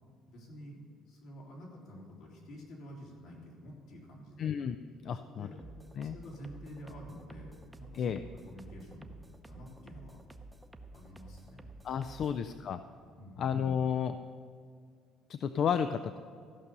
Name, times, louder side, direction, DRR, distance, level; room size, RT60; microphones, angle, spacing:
voice 1, 0.3-0.8 1.0-4.5 5.2-5.6 6.0-9.1 9.5-10.2 10.9-11.7 12.0-12.4 13.2-13.7, equal, 75° left, -3 dB, 3.2 m, -49 dB
voice 2, 4.4-4.8 5.0-5.5 6.0-6.2 7.9-8.2 11.8-12.8 13.4-14.2 15.3-16.2, left 7 dB, 50° left, 10 dB, 0.4 m, -32 dB
sound 1, 5.6-12.4, right 2 dB, 10° right, 0.7 m, -51 dB
14.5 x 5.4 x 6.7 m, 2.2 s
cardioid pair, 115°, 0 cm